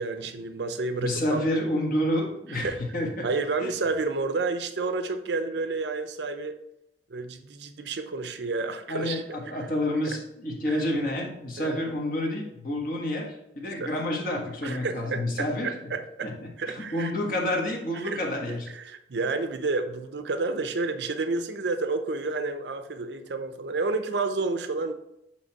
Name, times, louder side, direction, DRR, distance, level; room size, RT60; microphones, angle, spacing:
voice 1, 0.0-1.4 2.5-2.8 3.2-6.5 7.1-9.2 9.5-9.7 10.7-10.8 11.6-11.8 13.8-13.9 14.6-16.3 16.6-17.1 18.0-18.2 18.7-24.9, right 3 dB, 70° right, 9 dB, 0.5 m, -30 dB
voice 2, 1.0-3.3 3.6-3.7 8.9-15.7 16.2-18.7, left 1 dB, 50° left, 0 dB, 1.5 m, -29 dB
8.1 x 3.2 x 4.5 m, 0.81 s
head